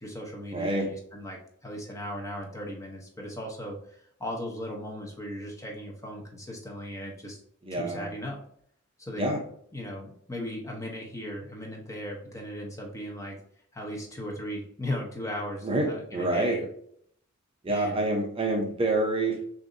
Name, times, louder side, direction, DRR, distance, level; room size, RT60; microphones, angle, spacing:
voice 1, 0.0-7.4 7.7-8.4 9.0-9.3 9.7-13.4 13.7-16.6 17.7-18.1, equal, 15° left, -1 dB, 0.9 m, -37 dB
voice 2, 0.5-0.9 7.6-8.1 9.2-9.4 15.6-16.7 17.6-19.5, right 2 dB, 25° right, 1 dB, 0.8 m, -27 dB
6.6 x 2.7 x 2.7 m, 0.65 s
head